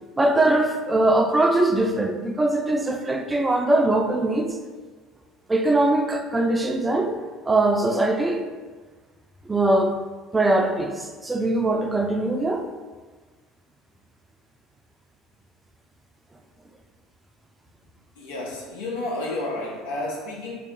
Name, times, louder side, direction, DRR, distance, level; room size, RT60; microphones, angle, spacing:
voice 1, 0.2-4.6 5.5-7.1 7.5-8.4 9.5-10.0 10.3-12.6, right 2 dB, 15° right, 5 dB, 0.4 m, -21 dB
voice 2, 18.2-20.5, left 2 dB, 90° left, -1 dB, 0.8 m, -31 dB
3.7 x 2.4 x 3.7 m, 1.4 s
supercardioid pair, 85°, 0 cm